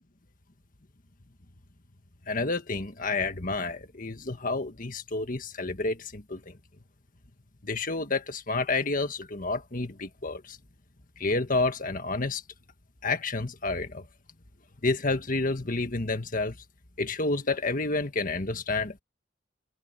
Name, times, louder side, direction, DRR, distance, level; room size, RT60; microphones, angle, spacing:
voice 1, 2.3-6.6 7.6-10.6 11.2-12.4 13.0-14.0 14.8-16.6 17.0-19.0, left 3 dB, 45° left, 1.7 m, -29 dB
head